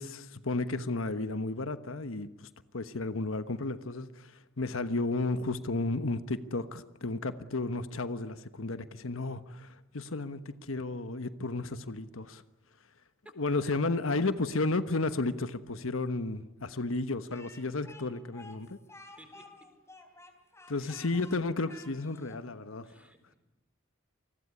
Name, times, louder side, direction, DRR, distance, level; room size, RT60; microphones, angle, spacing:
voice 1, 0.0-12.4 13.4-18.8 20.7-23.0, left 2 dB, 80° left, 12 dB, 1.2 m, -33 dB
Speech, 17.3-22.4, left 2 dB, 15° left, 3.4 m, -52 dB
voice 2, 20.8-21.1 22.8-23.4, right 1 dB, 5° right, 8 dB, 3.9 m, -57 dB
28.5 x 21.0 x 9.9 m, 0.99 s
head